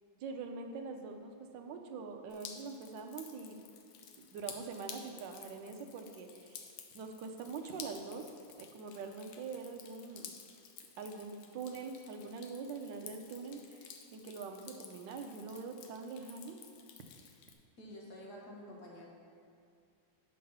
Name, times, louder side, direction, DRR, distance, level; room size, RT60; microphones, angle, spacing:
voice 1, 0.2-3.6 4.2-6.6 6.9-8.3 8.6-10.3 11.0-16.6, right 4 dB, 70° right, 4 dB, 1.2 m, -44 dB
Drip, 2.3-17.5, left 7 dB, 75° left, 1.4 m, -53 dB
voice 2, 17.8-19.1, left 1 dB, 55° left, -2 dB, 1.6 m, -49 dB
6.7 x 5.2 x 5.5 m, 2.4 s
omnidirectional pair, 2.4 m